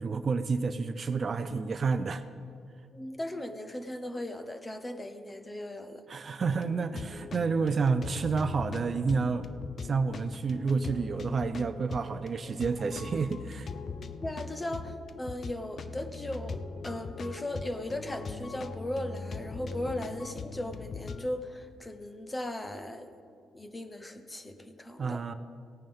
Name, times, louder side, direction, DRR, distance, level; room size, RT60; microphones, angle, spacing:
voice 1, 0.0-2.2 6.1-9.5 9.8-13.7 25.0-25.3, right 4 dB, 40° right, 11 dB, 0.5 m, -29 dB
voice 2, 2.9-6.0 14.2-23.1 23.5-25.2, left 1 dB, 15° left, 8 dB, 0.9 m, -37 dB
sound 1, 6.5-21.3, left 4 dB, 45° left, 0.5 m, -41 dB
17.5 x 9.0 x 3.6 m, 2.3 s
cardioid pair, 90°, 0 cm